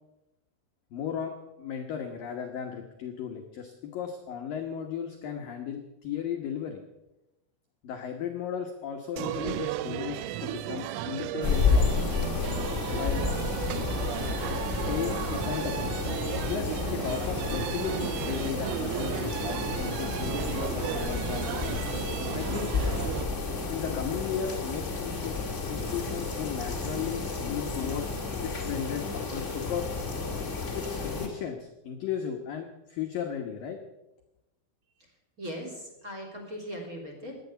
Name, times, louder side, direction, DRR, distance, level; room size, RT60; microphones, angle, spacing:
voice 1, 0.9-1.3 1.6-6.8 7.8-12.2 12.9-13.2 14.7-15.9 16.5-21.9 22.3-22.7 23.7-25.4 25.7-29.9 30.7-33.8, left 8 dB, 85° left, 3 dB, 1.9 m, -35 dB
sound 1, 9.2-23.2, right 13 dB, 80° right, 2.8 m, -34 dB
sound 2, 11.4-31.3, left 4 dB, 35° left, 1.1 m, -31 dB
voice 2, 35.4-37.5, equal, 20° right, 2 dB, 2.7 m, -39 dB
17.5 x 11.5 x 7.0 m, 0.96 s
omnidirectional pair, 5.9 m